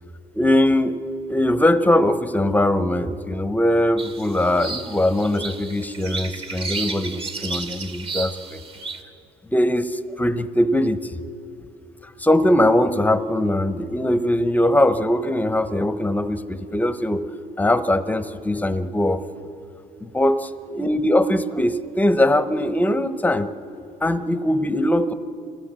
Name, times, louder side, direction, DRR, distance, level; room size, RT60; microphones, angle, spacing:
voice 1, 0.3-1.0 1.3-8.6 9.5-11.1 12.2-17.2 17.6-19.2 20.0-20.4 20.7-23.5 24.0-25.1, left 1 dB, 10° left, 11 dB, 0.9 m, -21 dB
sound 1, 4.0-9.0, right 4 dB, 35° right, 1.8 m, -33 dB
26.0 x 17.0 x 7.6 m, 2.8 s
cardioid pair, 110°, 17 cm